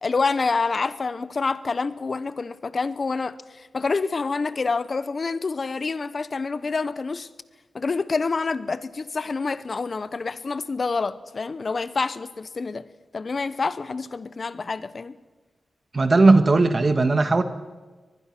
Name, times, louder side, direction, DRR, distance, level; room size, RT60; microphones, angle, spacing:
voice 1, 0.0-7.3 7.7-12.9 13.1-15.1, left 4 dB, 45° left, 0.8 m, -27 dB
voice 2, 15.9-17.4, right 3 dB, 35° right, 1.4 m, -17 dB
23.5 x 20.0 x 6.0 m
wide cardioid pair, 120°, 0 cm